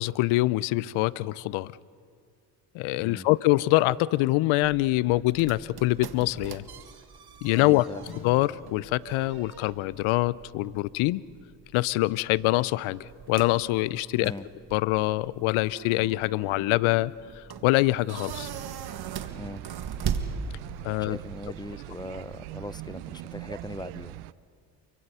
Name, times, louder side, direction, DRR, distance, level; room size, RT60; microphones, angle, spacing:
voice 1, 0.0-1.7 2.7-6.6 7.4-7.9 8.2-11.2 11.7-14.3 14.7-18.5 20.8-21.2, left 19 dB, 75° left, 21 dB, 0.7 m, -25 dB
sound 1, 4.6-21.0, right 7 dB, 50° right, 1.8 m, -40 dB
voice 2, 7.5-8.1 14.2-14.5 19.3-19.6 21.0-24.2, left 2 dB, 10° left, 16 dB, 0.8 m, -40 dB
sound 2, 8.0-10.7, left 11 dB, 45° left, 1.2 m, -49 dB
sound 3, 18.3-24.3, right 17 dB, 85° right, 0.7 m, -41 dB
29.0 x 23.0 x 5.6 m, 2.2 s
hypercardioid pair, 55°, 48 cm